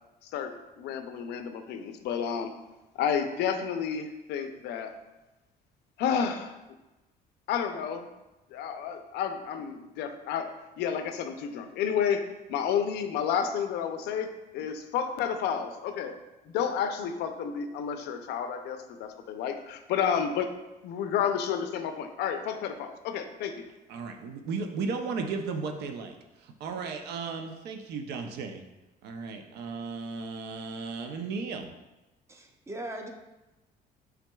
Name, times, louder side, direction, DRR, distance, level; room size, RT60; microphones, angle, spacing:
voice 1, 0.2-2.5 3.0-4.9 6.0-6.5 7.5-8.1 8.5-14.3 14.5-16.1 16.5-20.5 20.8-23.6, left 7 dB, 80° left, 7 dB, 0.5 m, -31 dB
voice 2, 23.9-26.2 26.4-28.6 29.0-31.7, right 4 dB, 75° right, 5 dB, 0.5 m, -35 dB
voice 3, 32.3-33.1, right 1 dB, 15° right, 4 dB, 0.6 m, -39 dB
5.9 x 3.6 x 2.3 m, 1.0 s
cardioid pair, 110°, 17 cm